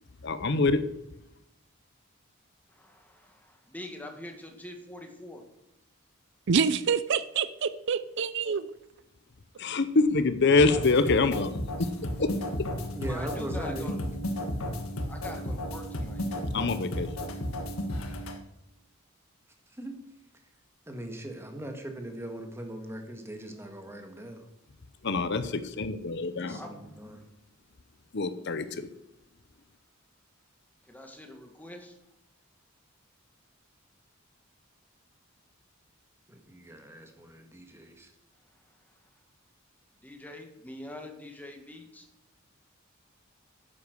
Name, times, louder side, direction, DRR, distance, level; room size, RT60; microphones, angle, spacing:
voice 1, 0.2-0.8 9.6-11.9 12.2-12.3 16.5-17.1 25.0-26.6 28.1-28.9, left 3 dB, 55° left, 0.7 m, -25 dB
voice 2, 2.7-5.4 13.0-14.0 15.1-16.2 26.5-26.7 30.8-32.0 40.0-42.1, left 1 dB, 10° left, 1.7 m, -44 dB
voice 3, 6.5-8.7, right 6 dB, 55° right, 0.5 m, -27 dB
sound 1, 10.6-18.4, left 1 dB, 85° left, 1.6 m, -33 dB
voice 4, 13.0-14.1 19.8-20.0 20.9-24.4 26.2-27.2 36.3-38.1, right 1 dB, 10° right, 1.6 m, -40 dB
10.0 x 8.4 x 6.4 m
head